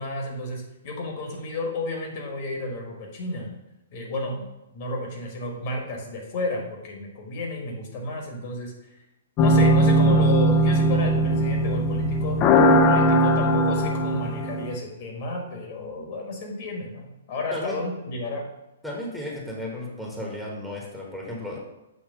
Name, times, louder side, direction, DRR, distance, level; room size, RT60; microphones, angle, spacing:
voice 1, 0.0-3.5 3.9-8.9 9.4-12.4 12.6-18.4, left 2 dB, 45° left, 0 dB, 1.5 m, -32 dB
sound 1, 9.4-14.7, equal, 30° left, 0.5 m, -19 dB
voice 2, 18.8-21.6, left 1 dB, ahead, -3 dB, 1.2 m, -34 dB
6.7 x 2.9 x 5.1 m, 0.95 s
hypercardioid pair, 130°, 0 cm